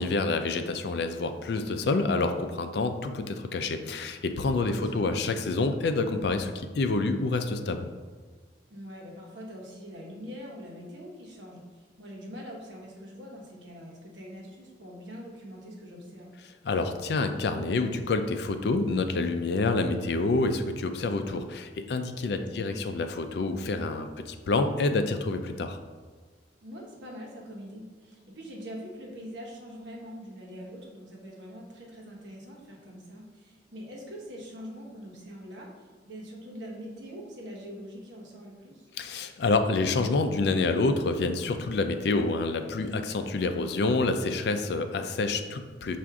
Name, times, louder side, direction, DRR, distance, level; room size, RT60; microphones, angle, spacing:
voice 1, 0.0-7.8 16.6-25.8 39.0-46.0, left 3 dB, 60° left, 7 dB, 0.4 m, -27 dB
voice 2, 4.6-5.1 8.7-16.4 22.3-22.6 26.6-35.7 36.0-38.8, equal, 85° right, -1 dB, 1.0 m, -43 dB
5.8 x 2.5 x 3.5 m, 1.5 s
head